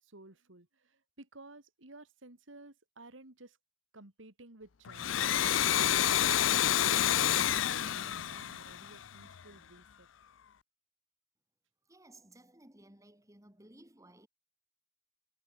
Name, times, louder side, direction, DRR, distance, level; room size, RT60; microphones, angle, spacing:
voice 1, 0.0-3.6 3.9-5.2 5.8-10.1, right 2 dB, 85° right, 3.1 m, -54 dB
Domestic sounds home sounds, 4.9-9.4, left 11 dB, 90° left, 0.5 m, -29 dB
voice 2, 11.8-14.3, right 1 dB, 15° right, 3.4 m, -58 dB
head